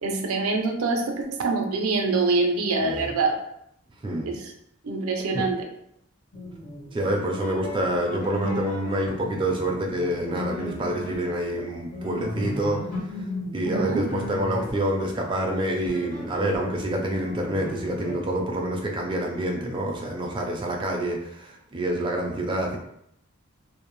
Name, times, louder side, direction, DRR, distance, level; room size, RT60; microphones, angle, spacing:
voice 1, 0.0-3.3 4.2-4.5 4.8-5.5 13.6-14.1, right 3 dB, 90° right, 4 dB, 0.5 m, -25 dB
voice 2, 2.8-3.1 4.0-4.3 5.3-5.4 6.9-13.3 13.5-22.8, right 1 dB, 25° right, 1 dB, 0.4 m, -27 dB
sound 1, 6.3-18.1, left 1 dB, 40° left, 0.9 m, -36 dB
2.5 x 2.0 x 3.0 m, 0.75 s
head